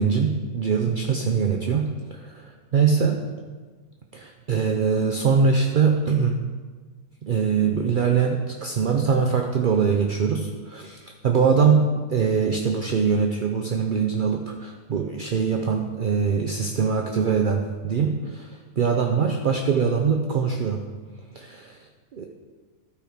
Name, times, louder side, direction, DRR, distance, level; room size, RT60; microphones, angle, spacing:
voice 1, 0.0-3.3 4.1-6.4 7.2-20.9 21.3-22.3, right 6 dB, 60° right, 3 dB, 0.5 m, -23 dB
12.5 x 4.6 x 5.0 m, 1.4 s
omnidirectional pair, 1.5 m